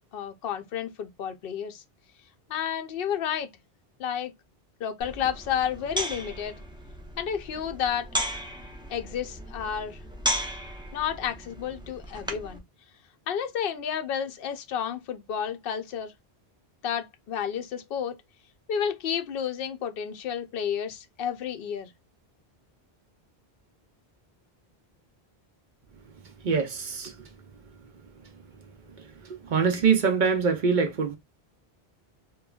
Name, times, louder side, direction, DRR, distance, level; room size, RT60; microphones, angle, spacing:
voice 1, 0.1-1.8 2.5-3.5 4.0-4.3 4.8-6.5 7.2-8.1 8.9-10.0 10.9-12.6 13.3-16.1 16.8-18.2 18.7-21.9, left 8 dB, 70° left, 0.8 m, -31 dB
sound 1, 5.0-12.6, equal, 10° right, 0.3 m, -35 dB
voice 2, 26.4-27.3 28.2-28.3 29.0-31.2, right 5 dB, 55° right, 0.7 m, -25 dB
2.9 x 2.3 x 2.2 m
omnidirectional pair, 1.0 m